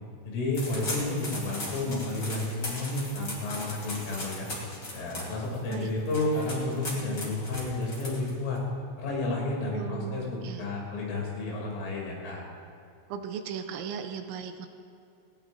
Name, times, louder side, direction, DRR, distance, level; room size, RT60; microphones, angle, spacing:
voice 1, 0.3-4.5 4.9-8.6 9.0-12.4, left 2 dB, 85° left, -3 dB, 5.7 m, -31 dB
sound 1, 0.5-8.6, left 1 dB, 30° left, 2.7 m, -38 dB
voice 2, 9.7-10.6 13.1-14.7, right 7 dB, 85° right, 6 dB, 2.9 m, -37 dB
19.5 x 18.5 x 2.7 m, 2.6 s
omnidirectional pair, 5.5 m